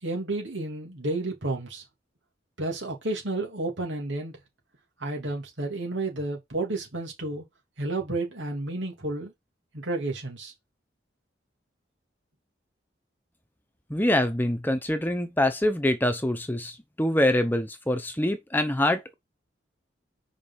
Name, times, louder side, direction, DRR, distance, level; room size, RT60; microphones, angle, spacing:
voice 1, 0.0-1.8 2.6-4.4 5.0-7.4 7.8-9.3 9.7-10.5, right 2 dB, 90° right, 3.0 m, -31 dB
voice 2, 13.9-19.1, left 1 dB, 10° left, 0.9 m, -25 dB
5.1 x 5.1 x 5.6 m
head